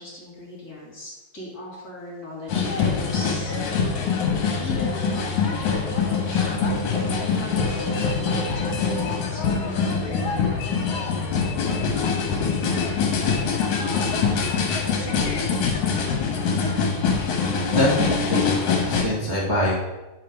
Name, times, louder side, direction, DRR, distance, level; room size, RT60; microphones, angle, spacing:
voice 1, 0.0-4.3 4.6-6.6 7.3-10.9, left 2 dB, 30° left, -5 dB, 2.8 m, -39 dB
sound 1, 2.5-19.0, left 5 dB, 80° left, 2.8 m, -24 dB
voice 2, 17.7-19.7, left 1 dB, 10° right, -7 dB, 1.3 m, -24 dB
9.8 x 5.5 x 5.2 m, 1.1 s
omnidirectional pair, 3.3 m